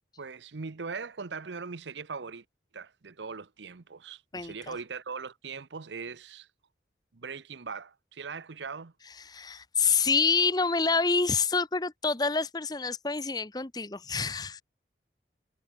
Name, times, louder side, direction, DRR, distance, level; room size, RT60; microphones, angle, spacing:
voice 1, 0.2-2.4 2.7-6.5 7.1-8.9, right 5 dB, 85° right, 0.8 m, -40 dB
voice 2, 4.3-4.7 9.3-14.6, left 4 dB, 20° left, 0.8 m, -27 dB
head